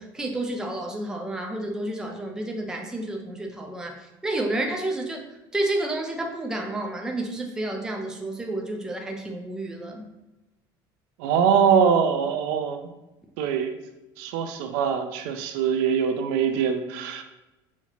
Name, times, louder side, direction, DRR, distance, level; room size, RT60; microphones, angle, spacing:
voice 1, 0.0-10.1, right 1 dB, 5° right, 2 dB, 0.5 m, -30 dB
voice 2, 11.2-12.8 13.4-13.7 14.2-17.2, right 7 dB, 90° right, 7 dB, 0.5 m, -23 dB
5.8 x 2.8 x 2.9 m, 1.0 s
cardioid pair, 165°, 9 cm